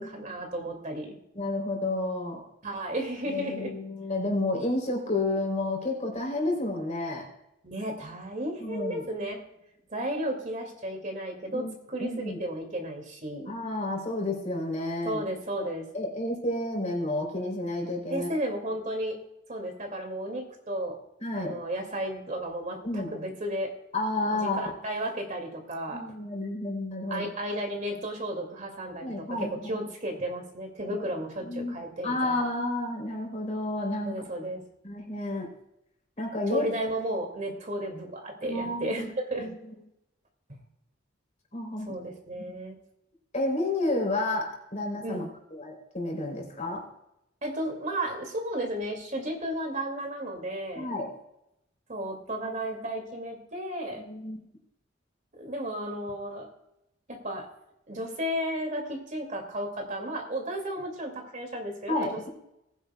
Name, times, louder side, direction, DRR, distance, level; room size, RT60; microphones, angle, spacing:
voice 1, 0.0-1.2 2.6-3.7 7.6-9.4 9.9-13.5 15.0-15.9 18.1-19.2 19.5-21.0 21.4-23.7 24.3-26.0 27.1-32.4 34.0-34.6 36.5-39.5 40.5-40.6 41.9-42.8 45.0-45.3 47.4-50.9 51.9-54.0 55.3-56.5 57.1-57.5 57.9-62.3, right 1 dB, 40° right, 3 dB, 2.3 m, -33 dB
voice 2, 1.3-2.4 3.3-7.3 8.6-9.1 11.5-11.7 12.0-12.4 13.5-15.2 15.6-15.7 15.9-18.3 21.2-21.5 22.8-23.1 23.9-24.6 25.9-27.3 29.0-29.8 30.9-31.1 31.4-31.7 32.0-34.2 34.8-35.5 36.2-36.6 38.4-39.1 39.4-39.6 41.5-41.9 42.4-42.5 43.3-45.2 45.5-46.8 50.7-51.1 54.1-54.4 61.9-62.3, left 2 dB, 35° left, 1 dB, 3.3 m, -30 dB
19.5 x 10.0 x 2.3 m, 0.84 s
head